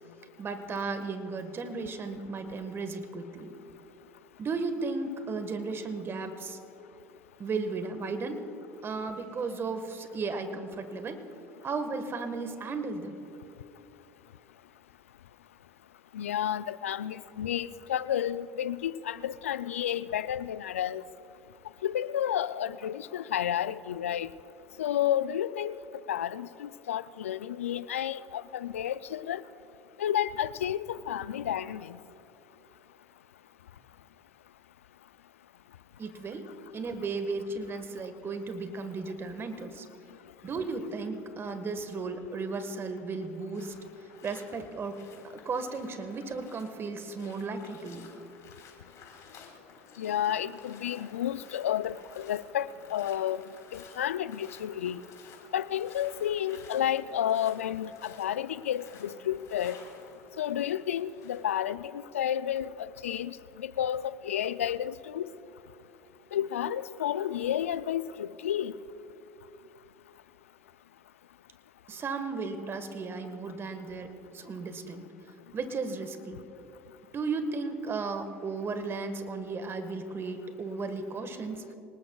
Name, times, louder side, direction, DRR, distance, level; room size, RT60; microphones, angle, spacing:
voice 1, 0.4-3.5 4.4-6.6 7.4-8.4 8.8-11.2 11.6-13.1 36.0-36.4 36.7-39.8 40.4-43.7 44.2-45.0 45.4-48.1 71.9-75.0 75.5-76.4 77.1-81.6, right 4 dB, 35° right, 8 dB, 1.5 m, -35 dB
voice 2, 16.1-21.0 21.8-24.3 24.8-25.7 26.1-29.4 30.0-32.0 50.0-53.4 53.7-55.0 55.5-59.8 60.4-65.3 66.3-68.7, left 10 dB, 85° left, 16 dB, 0.4 m, -31 dB
sound 1, 43.5-61.4, left 6 dB, 50° left, 3.9 m, -54 dB
25.0 x 19.5 x 2.3 m, 2.9 s
hypercardioid pair, 70°, 7 cm